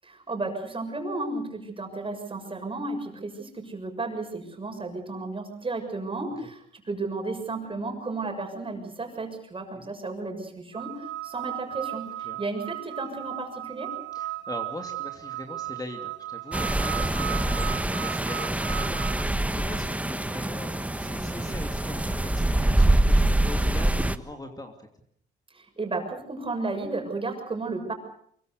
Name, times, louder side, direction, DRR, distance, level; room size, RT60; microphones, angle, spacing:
voice 1, 0.0-13.9 25.5-27.9, right 3 dB, 25° right, 4 dB, 6.7 m, -33 dB
sound 1, 10.7-19.2, right 15 dB, 65° right, 1.2 m, -36 dB
voice 2, 14.1-24.9, left 2 dB, 20° left, 4 dB, 2.8 m, -41 dB
sound 2, 16.5-24.2, right 1 dB, 5° right, 1.3 m, -25 dB
24.5 x 23.0 x 6.7 m, 0.66 s
cardioid pair, 90°, 20 cm